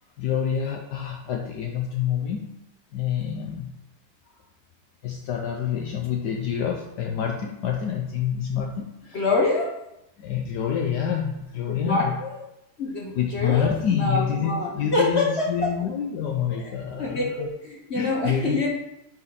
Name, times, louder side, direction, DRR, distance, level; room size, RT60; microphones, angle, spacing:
voice 1, 0.2-2.5 2.9-3.7 5.0-9.2 10.2-12.1 13.1-17.5 17.9-18.7, left 8 dB, 70° left, 2 dB, 1.3 m, -27 dB
voice 2, 9.1-9.7 11.7-12.4 12.8-15.8 16.5-16.7 17.0-18.7, left 2 dB, 40° left, -1 dB, 1.2 m, -26 dB
10.0 x 4.3 x 4.1 m, 0.87 s
omnidirectional pair, 2.0 m